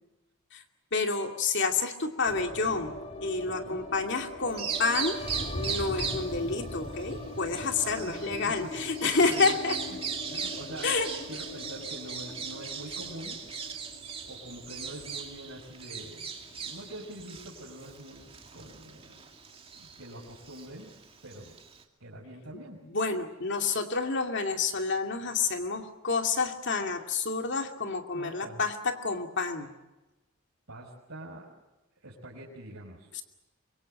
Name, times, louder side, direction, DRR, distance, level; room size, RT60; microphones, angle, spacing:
voice 1, 0.9-2.9 3.2-5.2 5.5-9.8 10.8-11.1 22.9-29.7 33.2-33.3, left 4 dB, 55° left, 4 dB, 2.5 m, -29 dB
sound 1, 2.2-18.4 18.6-18.7 19.0-19.7, left 1 dB, 30° left, 2.1 m, -41 dB
voice 2, 3.4-3.8 7.8-8.5 9.0-9.6 9.9-10.0 10.3-10.9 11.3-13.4 14.3-18.3 18.5-19.2 19.7-20.9 21.2-21.5 22.0-22.8 28.1-28.6 30.7-31.5 32.0-33.1, right 1 dB, 80° right, -5 dB, 5.4 m, -45 dB
Bird vocalization bird call bird song, 4.4-21.8, right 6 dB, 30° right, 2.5 m, -39 dB
25.0 x 23.5 x 7.8 m, 1.0 s
head